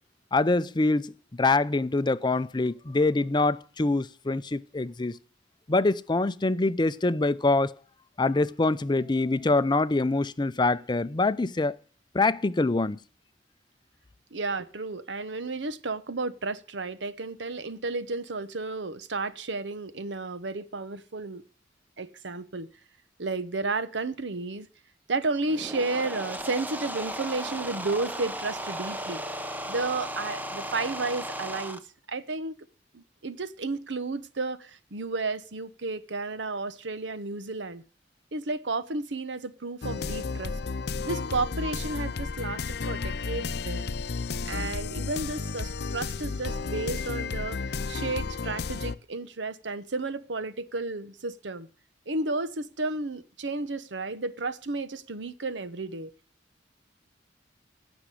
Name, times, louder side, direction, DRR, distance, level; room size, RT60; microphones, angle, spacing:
voice 1, 0.3-5.2 5.7-7.7 8.2-11.7 12.1-13.0, left 2 dB, 25° left, 0.5 m, -25 dB
voice 2, 14.3-21.4 22.0-22.7 23.2-24.7 25.1-29.2 29.7-31.8 32.1-32.7 32.9-37.8 38.3-40.6 41.0-43.9 44.4-51.7 52.1-56.1, right 3 dB, 85° right, 1.0 m, -32 dB
sound 1, 25.4-31.8, right 1 dB, 10° right, 0.9 m, -35 dB
sound 2, 39.8-49.0, left 4 dB, 65° left, 0.6 m, -32 dB
16.0 x 6.2 x 8.3 m
head